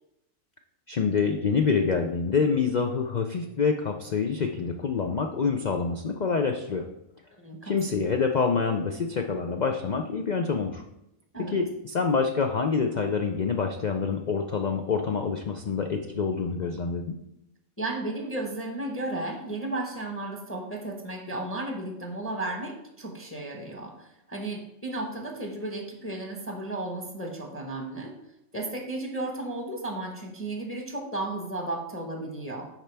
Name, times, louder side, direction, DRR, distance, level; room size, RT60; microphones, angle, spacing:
voice 1, 0.9-6.9 7.6-10.8 11.4-17.0, left 5 dB, 85° left, 4 dB, 0.3 m, -26 dB
voice 2, 7.4-8.0 11.3-11.6 17.8-28.1 28.5-32.7, right 2 dB, 10° left, 1 dB, 0.9 m, -34 dB
11.0 x 4.4 x 3.4 m, 0.84 s
omnidirectional pair, 1.5 m